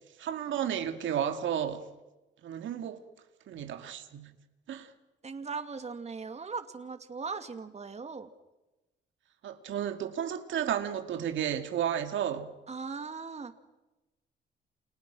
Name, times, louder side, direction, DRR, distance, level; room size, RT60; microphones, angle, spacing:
voice 1, 0.2-1.9 2.4-3.0 3.5-4.3 4.7-4.9 9.4-12.6, right 9 dB, 75° right, 2.3 m, -32 dB
voice 2, 5.2-8.3 12.7-13.5, right 5 dB, 35° right, 2.5 m, -39 dB
29.5 x 28.0 x 6.3 m
cardioid pair, 90°, 20 cm